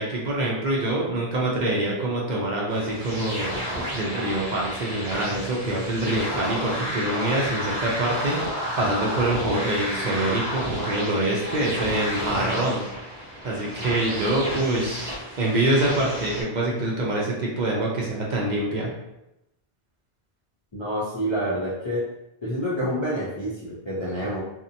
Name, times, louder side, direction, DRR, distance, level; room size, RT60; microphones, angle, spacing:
voice 1, 0.0-12.9 13.4-15.1 15.4-18.9, right 1 dB, 55° right, -3 dB, 0.6 m, -25 dB
sound 1, 2.7-16.4, equal, 20° right, 1.1 m, -31 dB
voice 2, 20.7-22.1 22.4-24.4, equal, 40° left, -8 dB, 0.4 m, -28 dB
2.7 x 2.1 x 2.5 m, 0.90 s
omnidirectional pair, 1.0 m